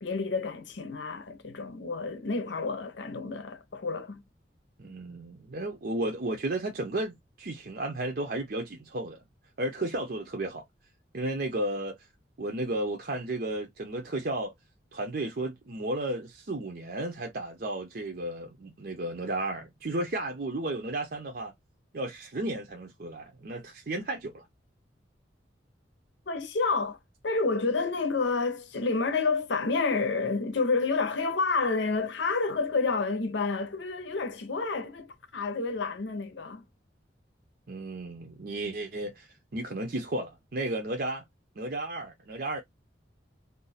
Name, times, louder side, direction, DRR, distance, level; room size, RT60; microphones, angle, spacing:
voice 1, 0.0-4.2 26.3-27.0 27.2-36.6, left 4 dB, 75° left, 0.7 m, -29 dB
voice 2, 4.8-9.2 9.6-10.6 11.1-12.0 12.4-14.5 14.9-21.5 21.9-24.4 37.7-39.3 39.5-41.2 41.6-42.6, right 1 dB, 50° right, 0.7 m, -33 dB
2.5 x 2.2 x 4.0 m
head